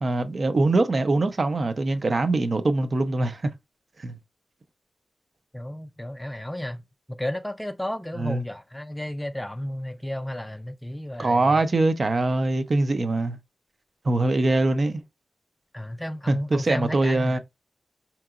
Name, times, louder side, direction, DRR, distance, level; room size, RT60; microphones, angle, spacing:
voice 1, 0.0-3.5 4.0-4.2 8.2-8.4 11.2-13.4 14.0-15.0 16.3-17.4, right 2 dB, 45° right, 0.5 m, -23 dB
voice 2, 5.5-6.8 7.1-11.6 15.7-17.4, left 1 dB, 10° left, 0.4 m, -33 dB
4.5 x 2.8 x 2.4 m
wide cardioid pair, 110°, 0 cm